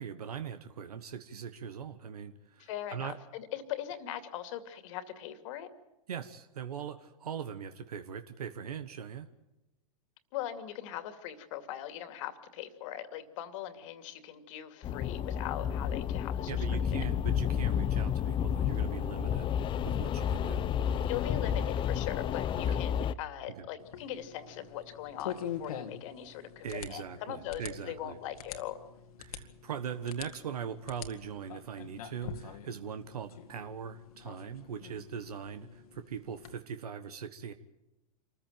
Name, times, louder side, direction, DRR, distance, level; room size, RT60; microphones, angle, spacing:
voice 1, 0.0-3.2 6.1-9.3 16.5-19.5 19.8-20.6 22.6-22.8 23.6-23.7 26.6-28.2 29.2-37.5, right 7 dB, 80° right, 9 dB, 1.4 m, -41 dB
voice 2, 2.6-5.7 10.3-16.6 16.9-17.1 21.0-28.8, left 11 dB, 55° left, 9 dB, 2.5 m, -40 dB
sound 1, 14.8-23.1, left 9 dB, 25° left, 0.8 m, -31 dB
sound 2, 23.8-36.5, left 8 dB, 70° left, 2.0 m, -45 dB
26.0 x 15.0 x 9.1 m, 0.97 s
hypercardioid pair, 115°, 19 cm